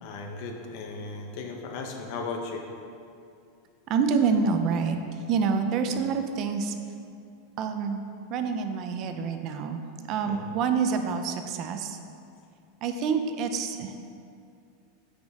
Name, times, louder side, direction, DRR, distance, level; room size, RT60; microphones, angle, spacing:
voice 1, 0.0-2.6 5.8-6.0 10.2-10.4, left 4 dB, 55° left, 2 dB, 0.9 m, -36 dB
voice 2, 3.9-5.0 5.3-6.7 7.6-8.0 8.3-9.8 10.1-12.0 12.8-14.0, right 5 dB, 40° right, 6 dB, 0.5 m, -27 dB
8.0 x 5.1 x 3.6 m, 2.4 s
supercardioid pair, 145°, 0 cm